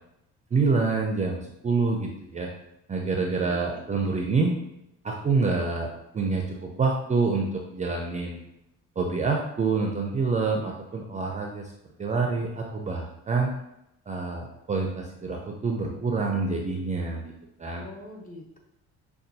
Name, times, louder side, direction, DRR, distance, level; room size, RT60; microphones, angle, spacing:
voice 1, 0.5-2.5 2.9-4.6 5.0-8.4 9.0-11.7 12.0-13.5 14.1-17.2 17.6-17.8, right 4 dB, 25° right, 1 dB, 0.4 m, -27 dB
voice 2, 3.2-3.8 17.7-18.6, left 2 dB, 25° left, 0 dB, 0.8 m, -44 dB
5.4 x 2.3 x 2.7 m, 0.83 s
cardioid pair, 115°, 32 cm